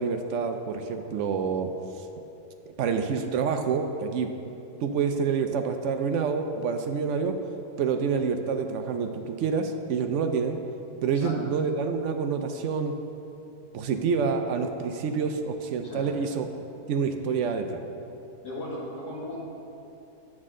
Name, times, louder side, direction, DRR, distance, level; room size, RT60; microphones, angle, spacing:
voice 1, 0.0-1.7 2.7-4.3 4.8-7.4 7.8-10.6 11.0-12.9 13.7-16.5 16.9-17.8, right 5 dB, 70° right, 6 dB, 0.7 m, -27 dB
voice 2, 11.1-11.4 15.8-16.1 18.4-19.4, left 1 dB, 80° left, -6 dB, 2.5 m, -37 dB
9.7 x 7.4 x 3.7 m, 2.9 s
omnidirectional pair, 1.7 m